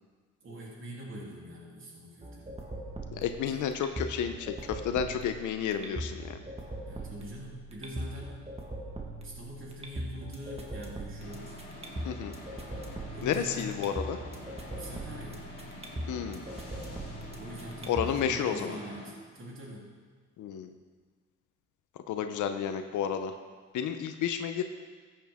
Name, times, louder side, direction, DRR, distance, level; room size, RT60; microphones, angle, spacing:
voice 1, 0.4-2.5 6.8-8.4 9.2-11.5 13.1-13.9 14.7-15.4 17.3-19.9, equal, 45° right, -4 dB, 3.1 m, -44 dB
sound 1, 2.2-18.2, right 1 dB, 20° right, 1.6 m, -41 dB
voice 2, 3.1-6.4 12.0-12.4 13.2-14.2 16.1-16.4 17.9-18.8 20.4-20.7 22.1-23.3 23.7-24.6, left 8 dB, 80° left, 8 dB, 0.8 m, -31 dB
sound 2, 11.2-19.1, left 1 dB, 30° left, 3.8 m, -46 dB
14.0 x 8.6 x 3.6 m, 1.5 s
cardioid pair, 90°, 30 cm